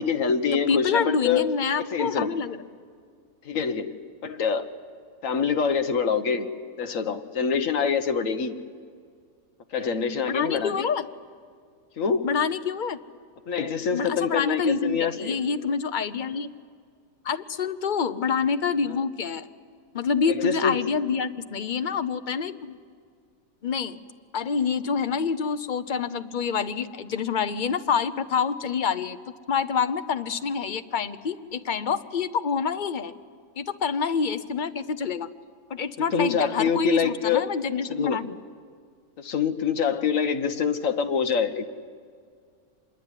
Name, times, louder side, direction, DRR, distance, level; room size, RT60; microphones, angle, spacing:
voice 1, 0.0-1.5 1.9-2.3 3.4-3.9 4.2-4.7 5.2-6.5 6.8-8.6 9.7-10.9 12.0-12.3 13.5-15.4 18.9-19.0 20.3-20.8 36.1-37.5 37.9-38.2 39.2-41.6, left 6 dB, 60° left, 7 dB, 1.5 m, -25 dB
voice 2, 0.5-2.6 10.3-11.1 12.2-13.0 13.9-16.5 17.2-19.5 19.9-22.8 23.6-24.0 24.3-29.2 29.5-33.1 33.6-35.3 35.7-38.3, left 6 dB, 40° left, 11 dB, 0.8 m, -27 dB
25.5 x 21.5 x 9.9 m, 2.1 s
omnidirectional pair, 1.6 m